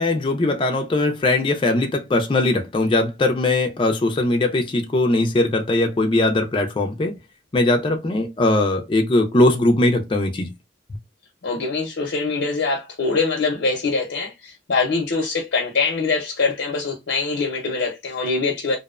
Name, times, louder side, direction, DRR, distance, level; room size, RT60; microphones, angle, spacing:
voice 1, 0.0-7.1 7.5-10.5, left 2 dB, 30° left, 0.4 m, -20 dB
voice 2, 11.4-18.8, left 4 dB, 85° left, 0.6 m, -23 dB
2.5 x 2.0 x 2.4 m
head